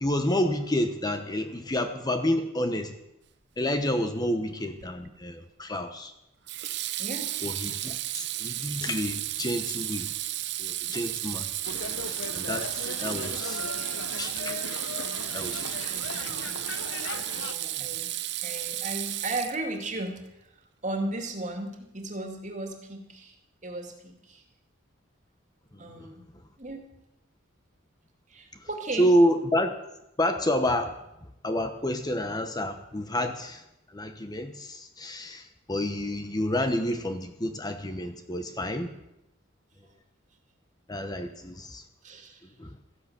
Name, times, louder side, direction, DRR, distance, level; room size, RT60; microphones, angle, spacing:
voice 1, 0.0-2.9 3.6-6.1 7.4-10.1 10.6-11.5 12.3-13.6 14.2-14.6 15.3-15.6 29.0-29.8 30.2-30.9 31.4-33.6 33.9-38.9 40.9-41.8 42.6-42.8, equal, 20° left, 7 dB, 1.0 m, -29 dB
Water tap faucet / Sink (filling or washing), 4.8-5.2 6.5-19.9, right 14 dB, 60° right, 0.8 m, -33 dB
voice 2, 6.9-7.3 16.1-16.6 17.4-18.1 18.4-20.2 20.5-23.4 23.6-24.4 25.8-26.2 26.6-26.8 28.3-29.1 39.8-39.9 42.0-42.5, right 2 dB, 40° right, 4 dB, 2.4 m, -36 dB
sound 1, 11.6-17.5, left 4 dB, 65° left, 0.9 m, -38 dB
14.5 x 11.0 x 8.0 m, 0.86 s
head